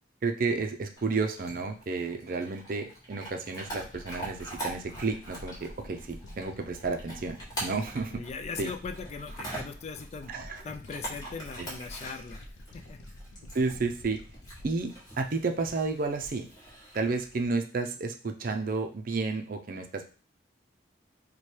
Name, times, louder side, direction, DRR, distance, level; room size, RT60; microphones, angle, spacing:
voice 1, 0.2-8.2 8.6-8.7 10.3-10.6 11.6-11.7 13.5-14.2 14.6-16.5 16.9-20.1, right 4 dB, 50° right, 5 dB, 0.5 m, -31 dB
Chewing mastication / Dog, 1.0-17.5, right 1 dB, 20° left, 1.2 m, -44 dB
sound 1, 3.6-16.0 16.4-16.5, left 1 dB, 85° left, 0.6 m, -48 dB
voice 2, 8.1-10.3 10.6-13.0, left 5 dB, 35° left, 6 dB, 0.3 m, -40 dB
3.2 x 2.2 x 4.3 m, 0.35 s
head